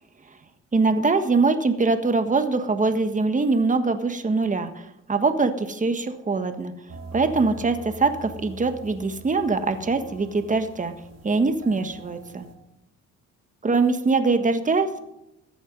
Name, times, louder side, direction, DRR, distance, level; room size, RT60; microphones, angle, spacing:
voice 1, 0.7-6.7 7.1-10.9 11.2-12.4 13.6-15.0, right 3 dB, 25° right, 8 dB, 1.5 m, -23 dB
sound 1, 6.9-12.5, right 2 dB, 60° right, 2.4 m, -43 dB
14.0 x 10.0 x 5.4 m, 0.84 s
cardioid pair, 90°, 30 cm